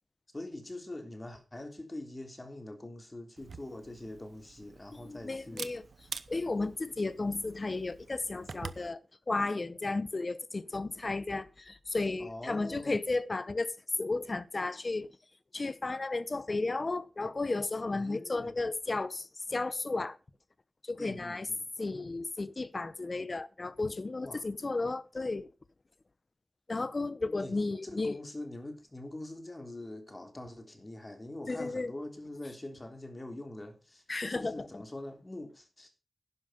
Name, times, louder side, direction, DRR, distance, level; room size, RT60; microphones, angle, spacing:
voice 1, 0.3-5.7 6.1-6.2 12.2-13.0 17.9-18.6 21.0-21.7 24.2-24.5 27.3-34.0 34.3-35.9, left 1 dB, 25° left, 3.3 m, -44 dB
Camera, 3.4-8.9, right 5 dB, 80° right, 0.8 m, -46 dB
voice 2, 4.9-5.8 6.3-9.0 9.3-15.1 15.5-20.2 20.9-21.5 21.8-25.5 26.7-28.2 31.5-31.9 34.1-34.7, left 3 dB, 40° left, 0.9 m, -33 dB
11.5 x 10.5 x 5.1 m
wide cardioid pair, 95°, 0 cm